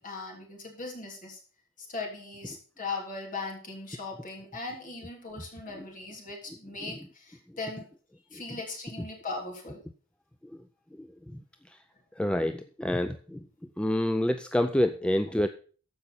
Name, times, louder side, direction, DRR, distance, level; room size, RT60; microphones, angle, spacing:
voice 1, 0.0-1.4 1.8-7.9 8.3-9.8, left 3 dB, 35° left, 0 dB, 3.4 m, -39 dB
voice 2, 12.2-13.4 13.8-15.5, left 1 dB, 5° left, 8 dB, 0.4 m, -27 dB
14.5 x 5.4 x 5.9 m, 0.41 s
head